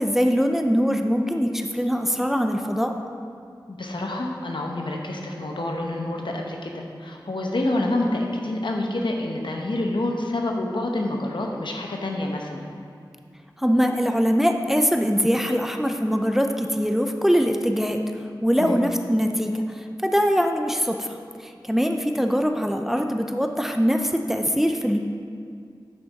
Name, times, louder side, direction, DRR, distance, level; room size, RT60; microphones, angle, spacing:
voice 1, 0.0-3.0 13.6-18.0 18.4-21.1 21.4-25.0, equal, 5° right, 5 dB, 0.5 m, -22 dB
voice 2, 3.7-12.7 18.6-18.8, left 1 dB, 75° left, 1 dB, 0.9 m, -27 dB
9.0 x 6.1 x 4.1 m, 2.3 s
wide cardioid pair, 45°, 8 cm